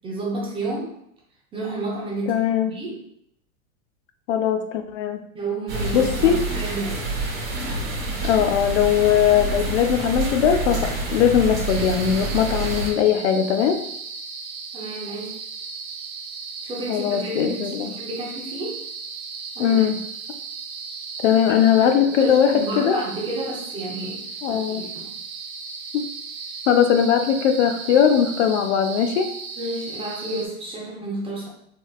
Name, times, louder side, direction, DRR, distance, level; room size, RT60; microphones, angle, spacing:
voice 1, 0.0-0.9 1.5-3.0 5.3-7.1 14.7-15.4 16.6-18.8 19.6-19.8 21.5-25.1 29.6-31.5, right 2 dB, 15° right, -4 dB, 0.4 m, -31 dB
voice 2, 2.3-2.7 4.3-5.2 5.9-6.4 8.2-13.8 16.9-17.9 19.6-20.0 21.2-23.0 24.4-24.8 25.9-26.1 26.7-29.3, left 8 dB, 60° left, 6 dB, 0.5 m, -20 dB
sound 1, 5.7-12.9, right 2 dB, 35° right, 1.1 m, -27 dB
sound 2, 11.7-30.5, right 5 dB, 65° right, 0.7 m, -36 dB
2.9 x 2.9 x 2.3 m, 0.72 s
hypercardioid pair, 110°, 42 cm